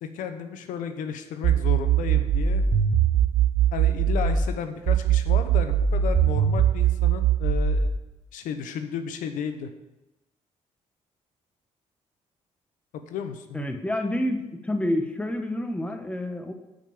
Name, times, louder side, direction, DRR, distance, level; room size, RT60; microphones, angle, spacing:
voice 1, 0.0-2.6 3.7-7.9 8.3-9.7 13.1-13.7, left 7 dB, 85° left, 8 dB, 0.9 m, -33 dB
sound 1, 1.4-4.4 4.9-7.9, right 9 dB, 75° right, 1.3 m, -21 dB
voice 2, 13.5-16.5, left 1 dB, 10° left, 6 dB, 1.2 m, -28 dB
9.0 x 5.1 x 7.2 m, 0.97 s
cardioid pair, 85°, 13 cm